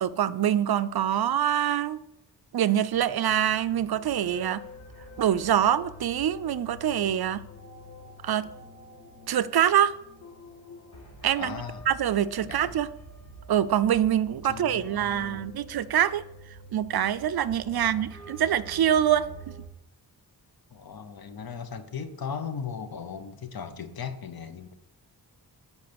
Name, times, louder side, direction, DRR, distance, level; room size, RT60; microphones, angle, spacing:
voice 1, 0.0-2.0 2.5-4.6 5.2-7.4 8.2-8.5 9.3-10.0 11.2-11.6 11.9-12.9 13.5-16.2 16.7-19.3, right 10 dB, 70° right, 0.5 m, -25 dB
sound 1, 2.9-19.7, equal, 40° left, 2.2 m, -47 dB
voice 2, 11.4-11.9 12.4-12.7 14.4-15.5 17.7-18.1 20.7-24.7, left 6 dB, 65° left, 0.9 m, -38 dB
8.1 x 4.8 x 6.9 m
wide cardioid pair, 115°, 39 cm